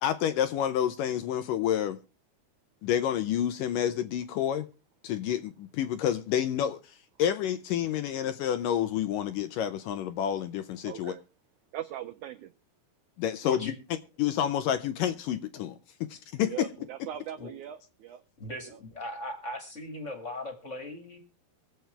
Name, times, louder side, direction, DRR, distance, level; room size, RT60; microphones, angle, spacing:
voice 1, 0.0-2.0 2.8-4.7 5.0-11.2 13.2-13.7 14.2-15.8 16.0-16.7, left 10 dB, 75° left, 2.2 m, -29 dB
voice 2, 10.8-11.2 11.7-12.5 16.5-18.2, right 11 dB, 80° right, 1.7 m, -40 dB
voice 3, 13.4-13.7 16.8-16.9 17.4-17.5 18.4-21.2, left 1 dB, 25° left, 1.9 m, -38 dB
23.0 x 7.9 x 3.4 m
omnidirectional pair, 4.3 m